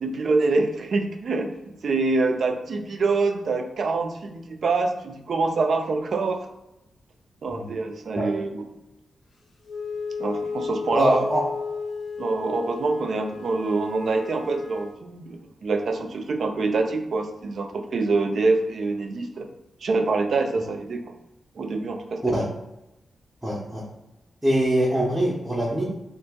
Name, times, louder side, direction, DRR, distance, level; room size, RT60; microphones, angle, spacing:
voice 1, 0.0-6.5 7.4-8.6 10.2-11.2 12.2-19.5 19.8-21.0 21.6-22.5, right 3 dB, 55° right, 5 dB, 0.4 m, -25 dB
Wind instrument woodwind instrument, 9.7-15.0, left 5 dB, 55° left, 0.6 m, -34 dB
voice 2, 10.9-11.4 22.2-22.5 23.4-23.8 24.4-25.8, right 1 dB, 5° right, -6 dB, 0.5 m, -23 dB
2.8 x 2.5 x 3.5 m, 0.94 s
wide cardioid pair, 170°, 0 cm